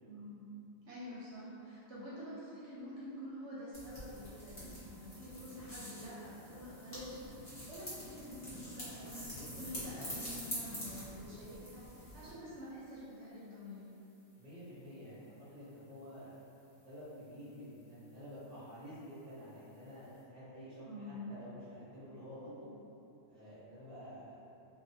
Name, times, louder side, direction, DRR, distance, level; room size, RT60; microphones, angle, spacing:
voice 1, 0.1-0.4 0.8-13.8 20.9-21.3, equal, 65° right, -9 dB, 0.8 m, -48 dB
sound 1, 3.7-12.3, equal, 35° left, 0.7 m, -46 dB
voice 2, 14.4-16.4 16.8-20.8 21.3-22.7 23.3-24.4, equal, 5° right, -11 dB, 0.4 m, -50 dB
2.4 x 2.1 x 2.6 m, 2.7 s
omnidirectional pair, 1.5 m